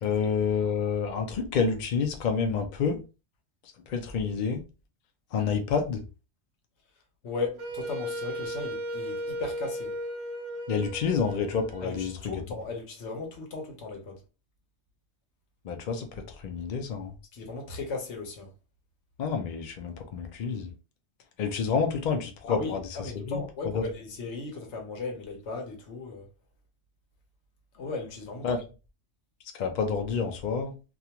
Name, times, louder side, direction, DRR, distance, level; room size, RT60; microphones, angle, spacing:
voice 1, 0.0-3.0 3.6-4.6 5.3-6.0 10.7-12.4 15.6-17.1 19.2-20.7 21.4-23.4 23.7-23.9 28.4-28.6 29.5-30.8, left 6 dB, 55° left, 0.5 m, -29 dB
voice 2, 7.2-10.0 11.8-14.2 17.3-18.5 22.5-26.3 27.7-28.5, left 3 dB, 75° left, 1.1 m, -36 dB
Wind instrument woodwind instrument, 7.6-12.5, equal, 90° right, 1.0 m, -36 dB
2.4 x 2.4 x 2.8 m
omnidirectional pair, 1.2 m